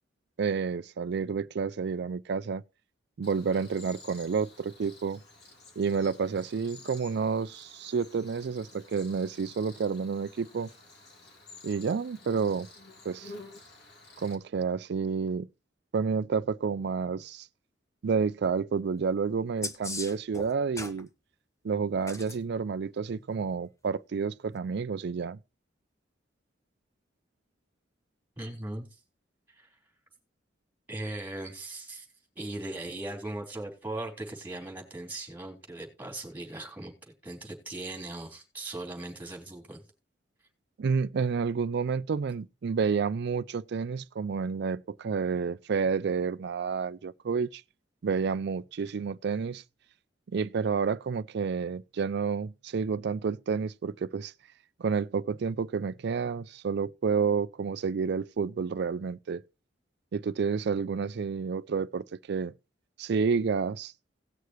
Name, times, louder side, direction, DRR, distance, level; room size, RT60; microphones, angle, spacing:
voice 1, 0.4-2.6 3.2-5.2 5.8-10.7 11.6-12.7 13.0-13.3 14.2-15.5 15.9-17.5 18.0-21.1 21.6-25.4 40.8-47.6 48.0-49.6 50.3-54.3 54.8-59.4 60.1-62.5 63.0-63.9, right 5 dB, 65° right, 0.4 m, -30 dB
Cricket, 3.2-14.4, left 2 dB, 65° left, 3.0 m, -51 dB
sound 1, 19.6-21.0 22.0-22.4 24.5-24.6, left 3 dB, 15° left, 0.9 m, -37 dB
voice 2, 28.4-28.9 29.6-29.7 30.9-32.1 32.4-36.9 37.2-39.8, right 2 dB, 10° right, 3.7 m, -39 dB
18.0 x 6.6 x 3.1 m
head